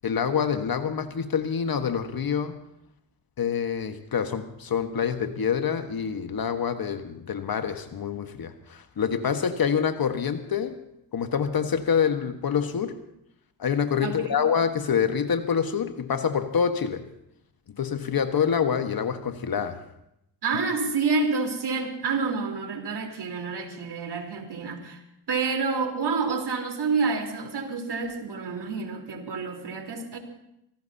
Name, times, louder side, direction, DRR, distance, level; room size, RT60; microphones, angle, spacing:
voice 1, 0.0-2.6 3.4-10.8 11.1-13.0 13.6-17.0 17.7-19.8, left 7 dB, 45° left, 8 dB, 1.5 m, -26 dB
voice 2, 14.0-14.4 20.4-25.0 25.3-30.2, right 4 dB, 50° right, 3 dB, 4.0 m, -28 dB
25.5 x 18.0 x 2.9 m, 0.80 s
hypercardioid pair, 55°, 49 cm